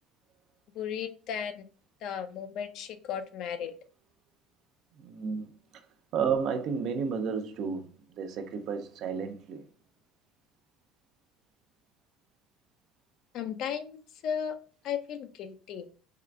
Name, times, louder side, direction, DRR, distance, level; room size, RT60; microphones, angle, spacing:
voice 1, 0.7-1.6 2.0-3.7 13.3-14.6 14.8-15.9, left 8 dB, 60° left, 0.5 m, -35 dB
voice 2, 5.0-5.5 6.1-7.9 8.2-9.6, right 6 dB, 55° right, 0.5 m, -31 dB
3.7 x 2.3 x 3.3 m
supercardioid pair, 105°, 0 cm